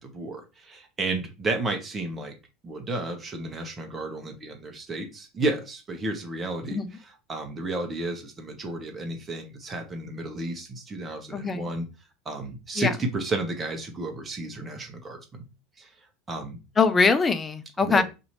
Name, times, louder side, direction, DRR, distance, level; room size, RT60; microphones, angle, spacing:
voice 1, 0.0-2.4 2.6-6.8 7.3-11.9 12.2-15.4 15.8-15.9 16.3-16.6 17.8-18.0, right 2 dB, 25° right, 4 dB, 1.0 m, -32 dB
voice 2, 11.3-11.7 12.8-12.9 16.8-18.0, left 4 dB, 20° left, 10 dB, 0.5 m, -22 dB
2.9 x 2.6 x 4.2 m, 0.29 s
figure-of-eight pair, 75°, 0 cm